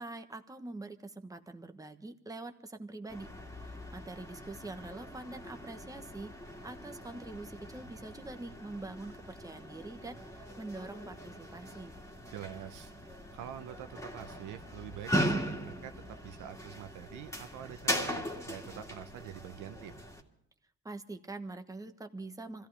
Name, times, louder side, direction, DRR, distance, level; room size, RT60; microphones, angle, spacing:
voice 1, 0.0-3.3 3.6-6.3 6.6-12.0 20.8-22.7, right 2 dB, 10° right, 7 dB, 1.3 m, -44 dB
sound 1, 3.1-20.2, equal, 10° left, 2.3 m, -39 dB
voice 2, 12.3-20.0, right 10 dB, 90° right, 8 dB, 1.0 m, -46 dB
25.5 x 15.0 x 3.5 m, 0.75 s
cardioid pair, 90°, 30 cm